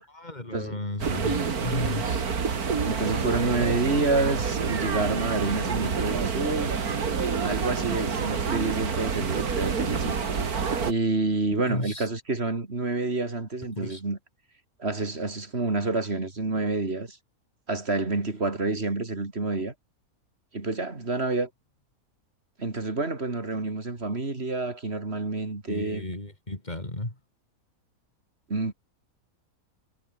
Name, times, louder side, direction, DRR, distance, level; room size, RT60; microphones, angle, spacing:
voice 1, 0.1-2.3 11.5-12.1 13.8-14.0 25.7-27.2, left 1 dB, 30° left, 4.5 m, -33 dB
sound 1, 1.0-10.9, right 5 dB, 75° right, 2.5 m, -28 dB
voice 2, 2.9-6.8 7.4-10.2 10.8-14.2 14.8-17.2 17.7-19.7 20.5-21.5 22.6-26.0 28.5-28.7, right 3 dB, 40° right, 3.5 m, -28 dB
omnidirectional pair, 1.6 m